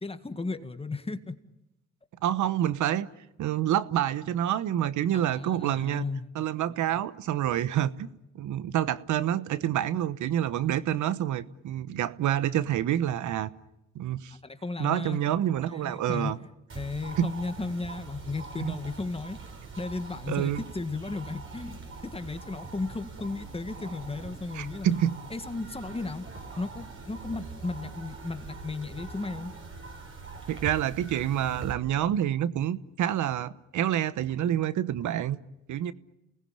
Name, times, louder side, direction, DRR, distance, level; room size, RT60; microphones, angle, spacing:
voice 1, 0.0-1.4 5.1-6.3 14.4-15.2 15.7-16.3 16.8-19.4 19.8-25.0 25.3-26.3 26.6-29.5, left 3 dB, 20° left, 1.9 m, -35 dB
voice 2, 2.2-3.1 3.4-6.0 6.3-8.1 8.3-13.5 13.9-14.4 14.8-16.4 17.2-17.3 18.6-18.8 20.3-20.6 24.5-25.2 30.5-35.4 35.7-35.9, right 11 dB, 75° right, 1.1 m, -27 dB
sound 1, 16.7-31.7, right 4 dB, 40° right, 8.0 m, -43 dB
29.5 x 19.5 x 8.9 m
cardioid pair, 90°, 30 cm